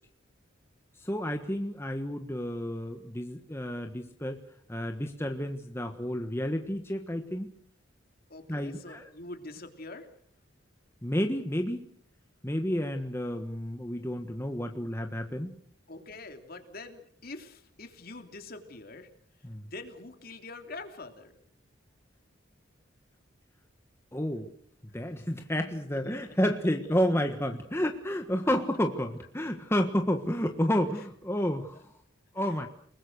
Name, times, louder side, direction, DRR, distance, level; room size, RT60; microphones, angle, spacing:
voice 1, 1.0-4.4 4.7-7.5 8.5-9.1 11.0-11.9 12.4-15.6 19.4-19.7 24.1-24.5 24.9-31.9 32.3-32.7, equal, 15° left, 5 dB, 1.5 m, -30 dB
voice 2, 8.3-10.1 15.9-19.1 19.6-21.4 25.9-26.4 28.4-28.6, left 2 dB, 50° left, 6 dB, 3.2 m, -45 dB
30.0 x 20.5 x 6.5 m, 0.64 s
head